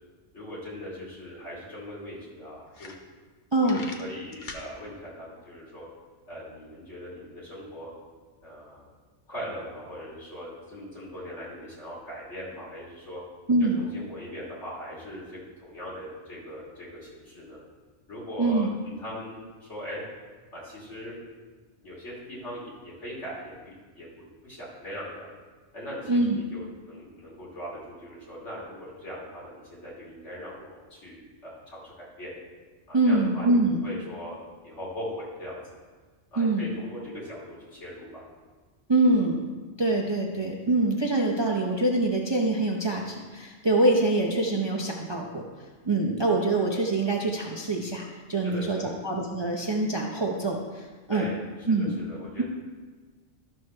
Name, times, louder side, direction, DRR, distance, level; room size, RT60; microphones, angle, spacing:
voice 1, 0.3-2.9 3.6-5.8 6.3-7.9 8.4-8.9 9.3-13.2 13.8-17.6 18.1-20.0 20.5-21.2 21.8-25.3 25.7-32.3 32.9-33.5 33.8-34.4 34.6-35.6 36.3-38.2 48.4-48.9 51.1-51.4 51.7-52.4, equal, 70° left, -7 dB, 3.2 m, -40 dB
sound 1, 1.7-1.8 2.3-2.4 2.7-3.4 3.6-4.7, left 4 dB, 45° left, 0.9 m, -42 dB
voice 2, 3.5-3.8 13.5-13.8 18.4-18.7 26.1-26.4 32.9-33.8 36.4-36.7 38.9-39.4 39.8-45.4 45.8-51.3 51.7-52.0, right 2 dB, 30° right, -1 dB, 0.6 m, -24 dB
12.5 x 6.4 x 3.2 m, 1.4 s
omnidirectional pair, 1.2 m